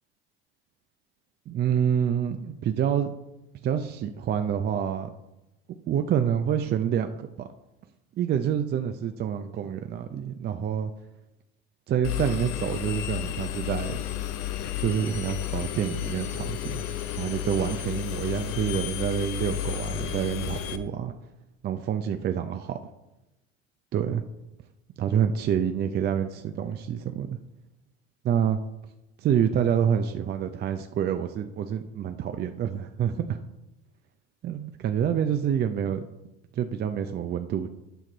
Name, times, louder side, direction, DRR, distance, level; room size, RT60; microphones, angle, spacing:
voice 1, 1.5-3.1 3.6-5.1 5.8-7.5 8.2-10.9 11.9-14.0 14.8-16.8 17.2-21.1 21.6-22.8 23.9-24.2 25.0-27.4 28.2-28.6 29.2-33.4 34.4-36.0 36.5-37.7, right 8 dB, 35° right, 8 dB, 0.5 m, -27 dB
Engine, 12.0-20.8, left 12 dB, 65° left, 0.8 m, -32 dB
9.2 x 5.9 x 3.9 m, 0.95 s
hypercardioid pair, 80°, 31 cm